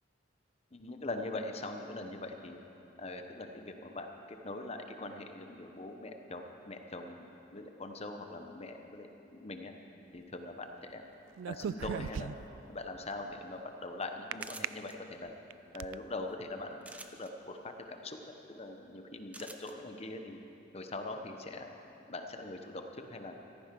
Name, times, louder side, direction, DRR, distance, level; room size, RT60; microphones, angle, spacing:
voice 1, 0.7-2.6 3.0-9.7 10.1-11.0 11.5-12.3 12.7-15.3 15.7-20.4 20.7-21.7 22.1-23.4, left 2 dB, 30° left, 5 dB, 1.0 m, -42 dB
sound 1, 11.4-12.6 14.3-14.7 15.3-15.9, right 8 dB, 75° right, 0.3 m, -37 dB
sound 2, 14.4-14.9 16.8-17.3 19.3-19.7, right 2 dB, 5° right, 0.6 m, -47 dB
14.5 x 13.5 x 6.0 m, 3.0 s
head